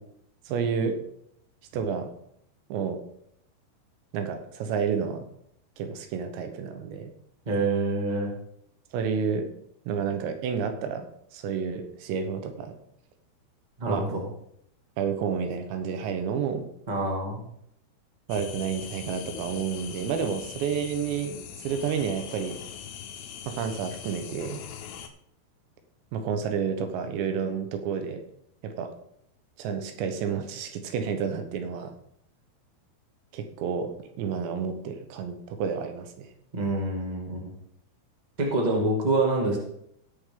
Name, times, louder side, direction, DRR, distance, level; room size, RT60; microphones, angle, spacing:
voice 1, 0.5-1.1 1.7-2.1 2.7-3.0 4.1-5.3 5.8-7.1 8.9-9.5 9.9-12.8 13.9-14.2 15.0-16.7 18.3-22.6 23.5-24.6 26.1-28.2 28.6-28.9 29.6-32.0 33.3-36.3, right 6 dB, 90° right, 7 dB, 3.4 m, -30 dB
voice 2, 7.4-8.3 13.8-14.3 16.9-17.4 36.5-37.5 38.4-39.6, right 2 dB, 25° right, -1 dB, 0.9 m, -26 dB
sound 1, 18.3-25.1, left 9 dB, 85° left, 2.9 m, -41 dB
17.5 x 7.0 x 3.8 m, 0.72 s
omnidirectional pair, 4.9 m